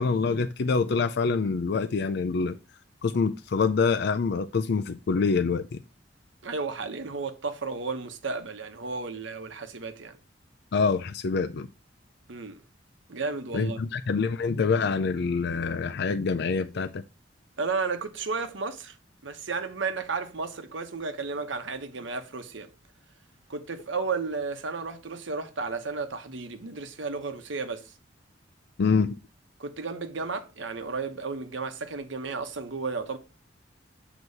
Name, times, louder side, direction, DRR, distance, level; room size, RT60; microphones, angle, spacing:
voice 1, 0.0-2.6 3.0-5.8 10.7-11.7 13.5-17.0 28.8-29.2, left 4 dB, 60° left, 0.4 m, -26 dB
voice 2, 6.4-10.2 12.3-12.6 13.1-13.8 17.6-19.0 19.2-22.7 23.5-27.9 29.6-33.2, right 4 dB, 75° right, 0.9 m, -33 dB
8.0 x 3.0 x 5.3 m
head